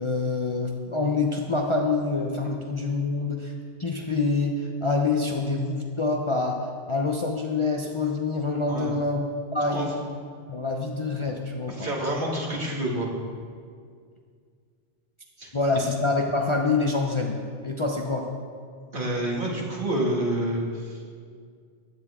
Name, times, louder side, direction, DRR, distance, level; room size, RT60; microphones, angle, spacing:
voice 1, 0.0-3.5 3.8-6.6 6.9-9.2 9.5-10.0 10.5-11.9 15.5-17.4 17.6-18.3, left 3 dB, 30° left, 0 dB, 0.8 m, -26 dB
voice 2, 11.8-13.1 15.4-15.5 18.9-21.1, right 1 dB, 50° right, -4 dB, 2.4 m, -28 dB
16.0 x 10.5 x 3.7 m, 2.1 s
omnidirectional pair, 1.1 m